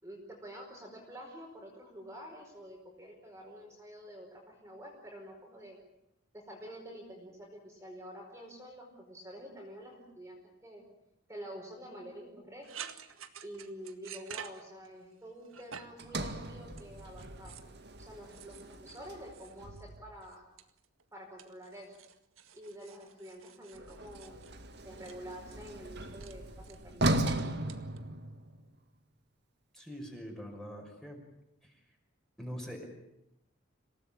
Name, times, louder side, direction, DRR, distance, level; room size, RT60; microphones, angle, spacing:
voice 1, 0.0-5.8 6.3-10.8 11.3-12.9 13.4-17.6 18.0-20.5 21.1-21.9 22.5-24.6 24.8-27.5, equal, 15° right, 0 dB, 4.9 m, -48 dB
sound 1, 12.6-15.1 15.4-16.1 16.7-17.8 18.3-19.9 20.2-21.0 21.4-25.2 25.6-25.8 26.2-26.4 26.6-27.2 27.7-28.0, right 8 dB, 75° right, 1.9 m, -50 dB
Sliding door, 16.0-20.3 23.7-28.7, right 1 dB, 50° right, 2.1 m, -37 dB
voice 2, 29.7-31.2 31.6-31.8 32.4-32.9, equal, ahead, 1 dB, 5.6 m, -43 dB
27.0 x 18.0 x 8.8 m, 0.85 s
head